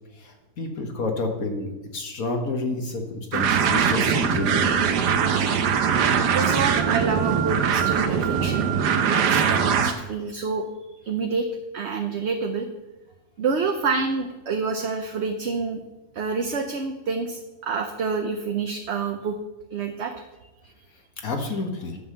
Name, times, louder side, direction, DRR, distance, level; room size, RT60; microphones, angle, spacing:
voice 1, 0.2-4.6 21.2-22.0, left 3 dB, 60° left, 3 dB, 1.9 m, -29 dB
sound 1, 3.3-9.9, right 7 dB, 85° right, 1.5 m, -21 dB
voice 2, 6.2-11.5 11.7-12.7 13.4-15.8 16.1-19.4 19.7-20.1, right 5 dB, 50° right, 4 dB, 0.9 m, -28 dB
10.5 x 5.5 x 7.8 m, 1.1 s
omnidirectional pair, 1.7 m